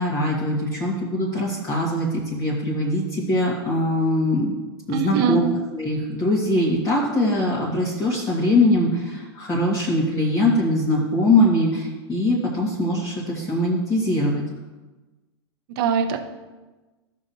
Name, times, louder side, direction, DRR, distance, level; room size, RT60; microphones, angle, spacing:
voice 1, 0.0-4.5 4.9-14.4, left 1 dB, 25° left, -5 dB, 2.0 m, -22 dB
voice 2, 4.9-5.4 15.7-16.3, right 5 dB, 55° right, 7 dB, 0.9 m, -22 dB
14.5 x 6.1 x 2.8 m, 1.2 s
hypercardioid pair, 120°, 14 cm